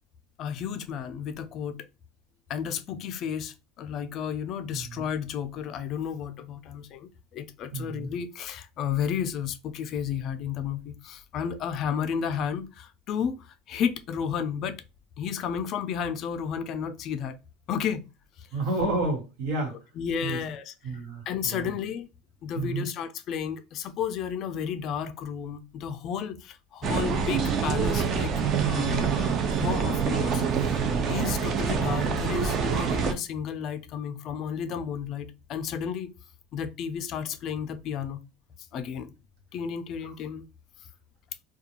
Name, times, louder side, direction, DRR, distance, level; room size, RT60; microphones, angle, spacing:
voice 1, 0.4-1.8 2.5-7.0 7.3-13.4 13.7-14.8 15.2-17.4 17.7-18.0 20.0-20.7 21.3-22.1 22.4-30.8 31.1-36.1 36.5-38.2 38.7-39.1 39.5-40.4, left 7 dB, 40° left, 0.3 m, -32 dB
voice 2, 4.7-5.0 7.7-8.1 18.5-19.8 20.2-20.4 20.8-21.7 22.5-22.9 30.9-31.1, right 2 dB, 75° right, 1.3 m, -31 dB
sound 1, 26.8-33.1, right 6 dB, 35° right, 0.4 m, -26 dB
2.4 x 2.2 x 2.8 m
cardioid pair, 160°, 0 cm